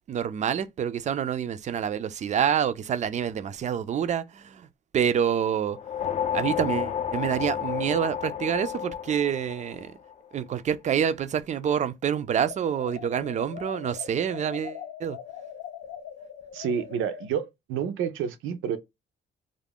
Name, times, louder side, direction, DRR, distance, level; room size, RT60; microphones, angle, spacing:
voice 1, 0.1-4.7 4.9-5.8 6.3-10.0 10.3-15.2, right 8 dB, 40° right, 0.4 m, -27 dB
sound 1, 5.7-10.3, left 9 dB, 35° left, 0.4 m, -31 dB
sound 2, 12.4-17.3, left 9 dB, 85° left, 0.5 m, -41 dB
voice 2, 16.5-18.8, right 8 dB, 85° right, 0.6 m, -29 dB
2.4 x 2.1 x 3.4 m
cardioid pair, 90°, 20 cm